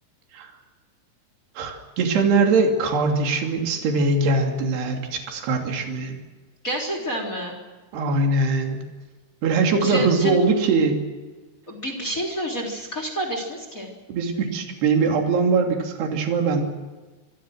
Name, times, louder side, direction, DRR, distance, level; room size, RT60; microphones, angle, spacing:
voice 1, 1.6-6.2 7.9-8.8 9.4-11.0 14.1-16.6, right 3 dB, 55° right, 2 dB, 4.7 m, -21 dB
voice 2, 6.6-7.5 9.8-10.4 11.7-13.9, right 1 dB, 20° left, 3 dB, 3.2 m, -29 dB
26.0 x 24.0 x 6.5 m, 1.3 s
omnidirectional pair, 5.9 m